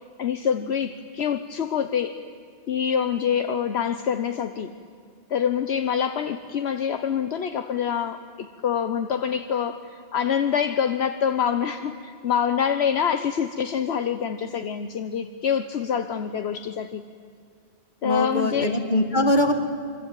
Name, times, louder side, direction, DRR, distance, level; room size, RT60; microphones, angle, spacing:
voice 1, 0.2-2.2 2.7-4.7 5.3-17.0 18.0-19.1, left 8 dB, 70° left, 9 dB, 1.1 m, -26 dB
voice 2, 18.0-19.5, left 1 dB, 45° left, 5 dB, 2.4 m, -22 dB
26.5 x 24.0 x 9.0 m, 2.2 s
omnidirectional pair, 1.1 m